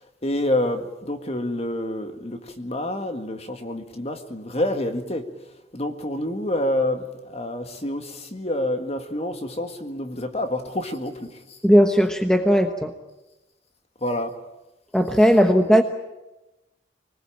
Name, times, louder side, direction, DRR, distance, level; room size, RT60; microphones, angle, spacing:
voice 1, 0.0-11.6 14.0-14.3, left 1 dB, 35° left, 1.9 m, -28 dB
voice 2, 11.6-12.9 14.9-15.8, equal, 5° left, 1.0 m, -17 dB
25.0 x 19.5 x 8.9 m
head